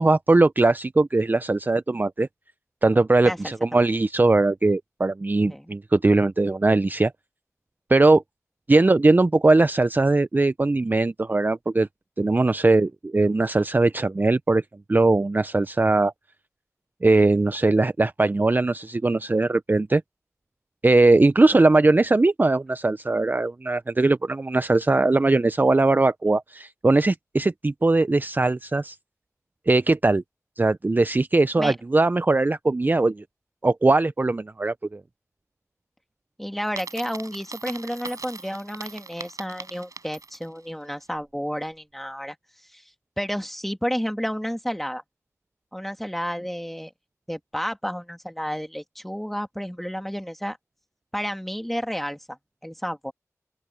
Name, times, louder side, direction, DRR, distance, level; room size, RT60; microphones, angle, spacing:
voice 1, 0.0-2.3 2.8-7.1 7.9-8.2 8.7-11.9 12.2-14.6 14.9-16.1 17.0-20.0 20.8-29.0 29.7-30.2 30.6-33.2 33.6-35.0, right 2 dB, 35° right, 0.4 m, -20 dB
voice 2, 3.2-3.9 5.5-5.7 31.6-31.7 36.4-42.4 42.7-42.8 43.2-45.0 45.7-46.9 47.3-50.6 51.1-53.1, equal, 5° left, 2.8 m, -31 dB
Coin (dropping), 36.6-40.6, right 4 dB, 80° right, 5.6 m, -40 dB
open air
wide cardioid pair, 60°, 6 cm